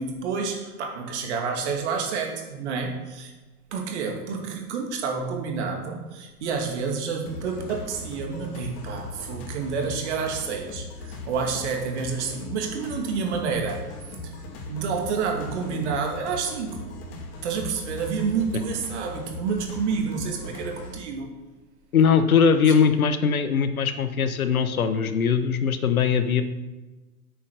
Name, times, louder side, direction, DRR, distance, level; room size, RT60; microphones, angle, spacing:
voice 1, 0.0-3.3 3.7-13.9 14.2-14.3 14.7-16.9 17.4-21.3 22.7-22.8, right 5 dB, 45° right, 2 dB, 2.5 m, -29 dB
sound 1, 7.3-21.0, left 2 dB, 35° left, 2.3 m, -39 dB
voice 2, 21.9-26.4, left 6 dB, 60° left, 10 dB, 1.2 m, -21 dB
9.8 x 8.5 x 6.3 m, 1.2 s
figure-of-eight pair, 110°, 47 cm